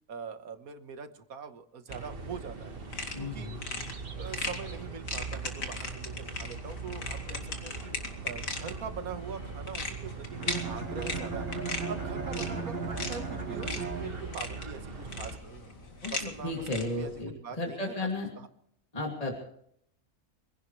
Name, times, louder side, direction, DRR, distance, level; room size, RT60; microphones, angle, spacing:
voice 1, 0.1-2.8 3.2-3.5 4.2-8.0 8.2-11.6 11.9-15.6 16.1-17.1 17.4-18.1 18.4-18.5, right 6 dB, 85° right, 9 dB, 1.8 m, -43 dB
sound 1, 1.9-17.2, left 3 dB, 75° left, 2.7 m, -40 dB
sound 2, 1.9-15.4, right 5 dB, 45° right, 1.5 m, -41 dB
voice 2, 3.1-3.7 12.2-12.3 16.0-18.3 18.9-19.4, left 2 dB, 25° left, 0 dB, 2.8 m, -34 dB
Bowed string instrument, 10.3-14.6, right 4 dB, 65° right, 2.9 m, -36 dB
25.0 x 16.5 x 3.2 m, 0.69 s
omnidirectional pair, 1.4 m